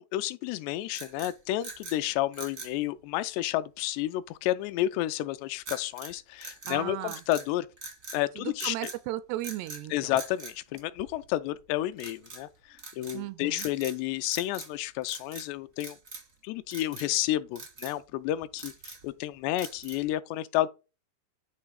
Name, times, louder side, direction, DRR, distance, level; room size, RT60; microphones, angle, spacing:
voice 1, 0.0-7.7 8.1-8.9 9.9-16.0 16.4-20.7, left 14 dB, 85° left, 2.7 m, -31 dB
sound 1, 0.9-2.0 2.3-2.8 5.6-6.1 6.4-7.5 7.8-8.2 8.6-9.0 9.4-9.8 10.1-11.3 12.0-12.4 12.8-13.2 13.5-14.0 14.3-14.8 15.0-15.5 15.8-16.3 16.7-17.1 17.5-18.0 18.4-19.1 19.6-20.1, right 3 dB, 65° right, 0.8 m, -43 dB
voice 2, 6.7-7.2 8.4-10.1 13.1-13.7, right 15 dB, 85° right, 2.6 m, -36 dB
9.7 x 3.3 x 4.7 m
omnidirectional pair, 4.8 m